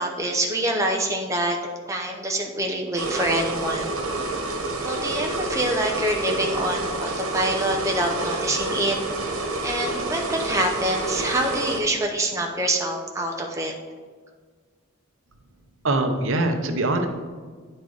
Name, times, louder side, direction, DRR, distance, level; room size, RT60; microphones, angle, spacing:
voice 1, 0.0-1.6 1.9-3.9 4.8-9.0 9.6-13.7, right 1 dB, 15° right, 1 dB, 0.6 m, -25 dB
sound 1, 3.0-11.8, right 2 dB, 85° right, 1.4 m, -28 dB
voice 2, 15.8-17.1, right 2 dB, 65° right, 5 dB, 0.8 m, -23 dB
9.4 x 4.4 x 4.7 m, 1.5 s
head